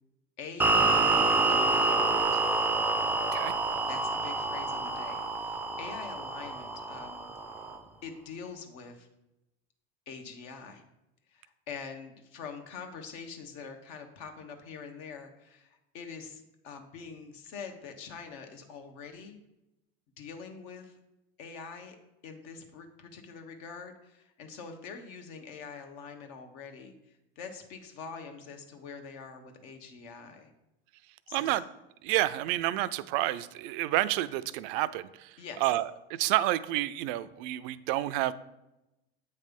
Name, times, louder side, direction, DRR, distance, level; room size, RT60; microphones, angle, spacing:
voice 1, 0.4-1.2 1.5-2.4 3.9-7.3 8.0-9.1 10.1-10.8 11.3-19.4 20.2-21.0 21.4-22.0 22.2-30.5 31.3-31.5 35.4-35.7, left 5 dB, 65° left, 5 dB, 1.2 m, -44 dB
sound 1, 0.6-7.8, right 3 dB, 5° right, 0.4 m, -27 dB
voice 2, 31.3-31.6 32.0-35.3 35.6-38.3, right 15 dB, 60° right, 15 dB, 0.4 m, -29 dB
8.1 x 3.3 x 5.2 m, 0.93 s
supercardioid pair, 105°, 30 cm